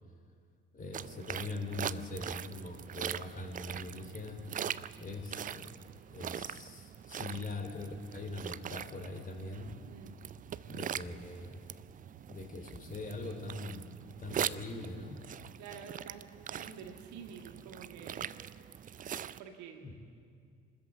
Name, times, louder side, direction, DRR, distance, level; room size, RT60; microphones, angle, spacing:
voice 1, 0.7-4.4 5.0-5.7 6.1-9.7 10.7-11.6 12.3-13.9 14.2-15.2 19.8-20.0, left 2 dB, 25° left, 5 dB, 3.1 m, -42 dB
sound 1, 0.9-19.4, right 9 dB, 25° right, 0.5 m, -42 dB
voice 2, 15.6-18.4 19.4-19.9, right 6 dB, 55° right, 5 dB, 1.8 m, -49 dB
25.0 x 13.5 x 8.3 m, 2.2 s
figure-of-eight pair, 55°, 35 cm